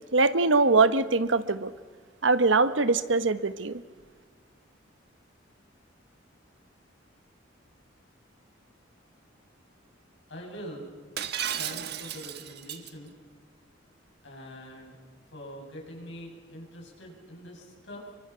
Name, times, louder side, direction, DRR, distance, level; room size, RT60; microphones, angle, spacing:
voice 1, 0.1-1.7 2.2-3.8, right 3 dB, 80° right, 12 dB, 1.2 m, -22 dB
voice 2, 10.3-10.9 11.5-13.1 14.2-15.0 15.3-18.1, equal, 70° left, 0 dB, 7.4 m, -43 dB
Shatter, 11.2-12.9, right 9 dB, 60° right, 1.3 m, -34 dB
30.0 x 24.0 x 5.8 m, 1.5 s
head